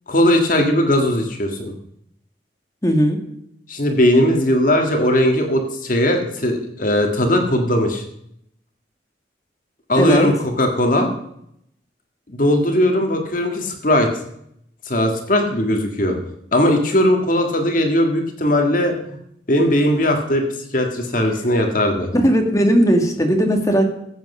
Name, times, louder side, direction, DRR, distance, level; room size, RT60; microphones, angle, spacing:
voice 1, 0.1-1.7 3.7-8.0 9.9-11.1 12.3-14.1 14.9-16.2 16.5-19.2 19.5-20.4 20.7-22.1, left 1 dB, 45° left, 3 dB, 1.8 m, -18 dB
voice 2, 2.8-3.2 10.0-10.3 22.2-23.8, equal, 20° left, 3 dB, 1.8 m, -17 dB
14.0 x 8.2 x 5.5 m, 0.74 s
head